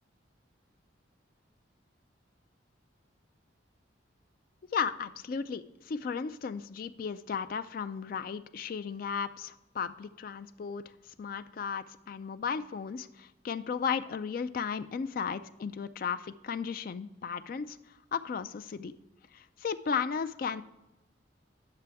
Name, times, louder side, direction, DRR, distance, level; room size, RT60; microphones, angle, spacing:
voice 1, 4.7-18.9 19.3-20.6, left 6 dB, 45° left, 11 dB, 0.3 m, -35 dB
10.0 x 6.7 x 3.4 m, 0.97 s
head